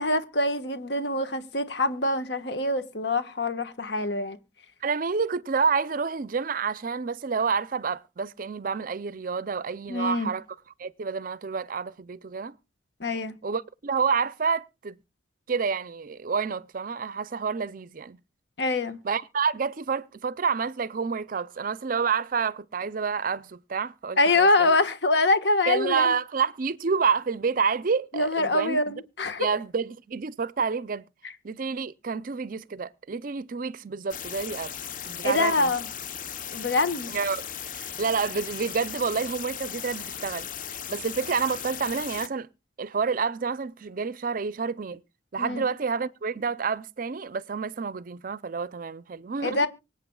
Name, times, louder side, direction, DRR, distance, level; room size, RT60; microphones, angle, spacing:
voice 1, 0.0-4.4 9.9-10.3 13.0-13.4 18.6-19.0 24.2-26.1 28.1-29.5 35.2-35.9 36.5-37.1 45.4-45.6 49.4-49.7, left 2 dB, 65° left, 1.4 m, -25 dB
voice 2, 4.8-10.4 10.8-12.5 13.4-15.0 15.5-18.2 19.0-24.8 25.7-29.0 29.4-31.0 31.4-34.7 35.0-35.7 37.1-37.5 37.7-42.5 42.8-45.0 45.3-49.7, right 5 dB, 45° right, 0.5 m, -29 dB
sound 1, 34.1-42.3, left 8 dB, 45° left, 0.9 m, -37 dB
24.5 x 8.5 x 2.3 m
head